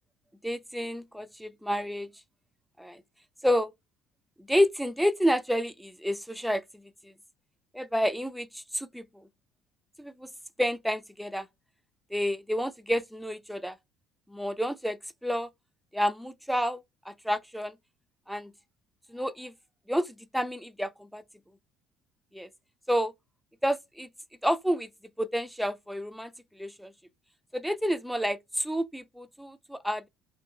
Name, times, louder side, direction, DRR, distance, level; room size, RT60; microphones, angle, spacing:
voice 1, 0.4-2.1 2.8-3.0 3.4-3.7 4.4-6.9 7.7-9.2 10.0-10.3 10.6-11.5 12.1-13.8 14.3-15.5 15.9-17.8 18.3-18.5 19.1-19.5 19.9-21.2 22.3-22.5 22.9-23.1 23.6-24.1 24.4-24.9 25.2-26.3 26.6-26.9 27.5-30.1, equal, ahead, 0.3 m, -29 dB
2.8 x 2.6 x 2.3 m
figure-of-eight pair, 55°, 0 cm